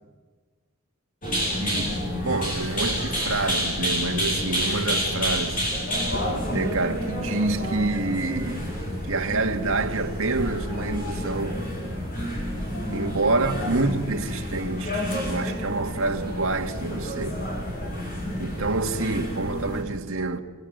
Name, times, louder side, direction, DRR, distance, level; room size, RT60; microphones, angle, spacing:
sound 1, 1.2-19.8, equal, 40° left, 7.6 m, -29 dB
voice 1, 1.5-5.6 6.5-8.8 9.1-11.6 12.9-17.4 18.4-20.4, right 3 dB, 70° right, 2.0 m, -27 dB
27.5 x 26.0 x 8.1 m
head